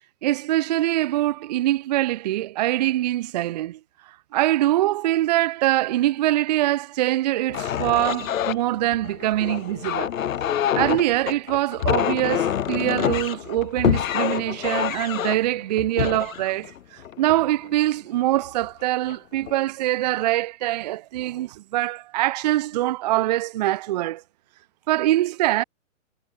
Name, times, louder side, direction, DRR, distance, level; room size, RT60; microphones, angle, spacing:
voice 1, 0.2-3.8 4.3-10.1 10.8-16.7 17.2-24.2 24.9-25.6, right 15 dB, 30° right, 0.6 m, -23 dB
sound 1, 7.5-17.7 18.4-18.7 19.1-19.6, left 10 dB, 80° left, 1.2 m, -26 dB
hypercardioid pair, 155°, 40 cm